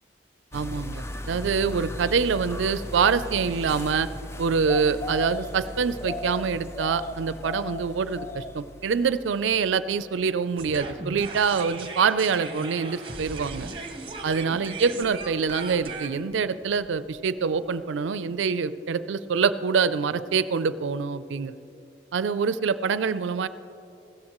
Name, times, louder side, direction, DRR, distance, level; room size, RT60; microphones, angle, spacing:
sound 1, 0.5-9.8 10.0-10.1, left 1 dB, 15° left, 0.4 m, -36 dB
voice 1, 0.5-4.1 4.4-13.7 14.2-21.6 22.1-23.5, right 5 dB, 85° right, 14 dB, 0.4 m, -25 dB
sound 2, 10.6-17.7, right 3 dB, 30° right, 0.9 m, -38 dB
16.0 x 13.5 x 3.0 m, 2.7 s
head